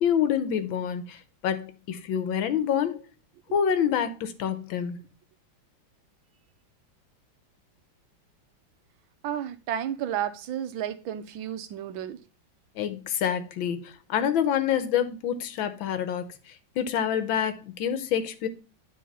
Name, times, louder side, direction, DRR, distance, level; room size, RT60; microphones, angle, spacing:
voice 1, 0.0-3.1 3.5-5.0 12.8-16.3 16.7-18.5, left 8 dB, 80° left, 1.7 m, -27 dB
voice 2, 9.2-12.2, right 10 dB, 85° right, 1.6 m, -32 dB
9.4 x 3.7 x 5.4 m
omnidirectional pair, 2.1 m